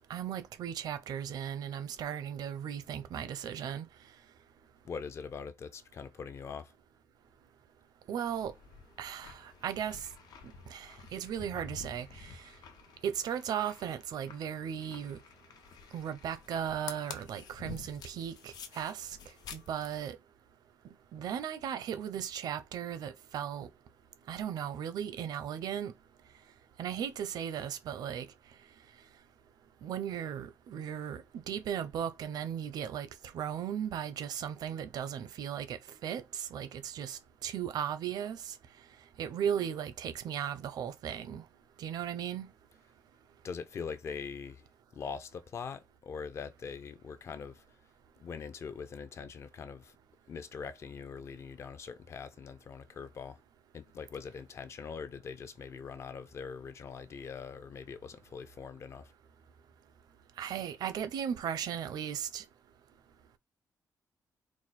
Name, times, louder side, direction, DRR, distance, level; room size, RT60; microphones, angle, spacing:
voice 1, 0.1-3.9 8.1-8.5 9.0-10.1 10.7-12.3 13.0-15.2 15.9-19.2 19.5-20.2 21.1-23.7 24.3-25.9 26.8-28.3 29.8-33.1 33.3-38.5 39.2-41.4 41.8-42.5 60.4-62.4, right 9 dB, 75° right, 0.7 m, -36 dB
voice 2, 4.8-6.7 43.4-44.7 44.9-47.6 48.2-50.0 50.3-53.4 53.7-59.1, left 6 dB, 45° left, 0.5 m, -42 dB
sound 1, 8.2-20.0, left 6 dB, 85° left, 0.9 m, -50 dB
4.7 x 2.2 x 4.2 m
wide cardioid pair, 175°, 7 cm